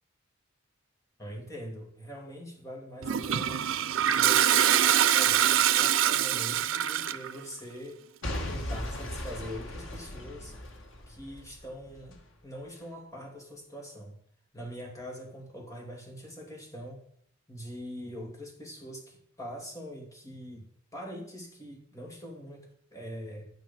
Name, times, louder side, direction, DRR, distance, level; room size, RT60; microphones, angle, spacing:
voice 1, 1.2-3.6 4.1-8.0 8.5-10.5 11.1-14.2 14.5-17.0 17.5-20.7 20.9-23.4, equal, 15° left, 1 dB, 2.8 m, -43 dB
Toilet flush, 3.0-7.3, right 10 dB, 85° right, 0.6 m, -24 dB
Boom / Shatter / Crushing, 8.2-12.2 12.8-12.9, left 1 dB, 80° left, 1.9 m, -38 dB
11.0 x 9.8 x 5.5 m, 0.64 s
head